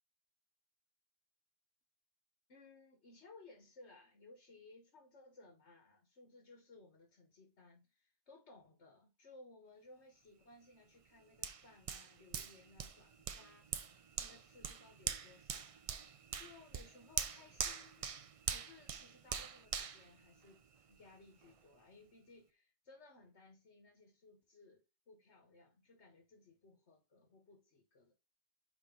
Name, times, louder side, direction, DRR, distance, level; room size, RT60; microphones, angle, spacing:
voice 1, 2.5-15.7 16.3-18.1 18.5-28.1, left 3 dB, 85° left, 1.7 m, -61 dB
Hands, 11.4-20.9 21.4-21.5, right 6 dB, 45° right, 0.4 m, -43 dB
5.3 x 4.8 x 3.9 m
omnidirectional pair, 1.1 m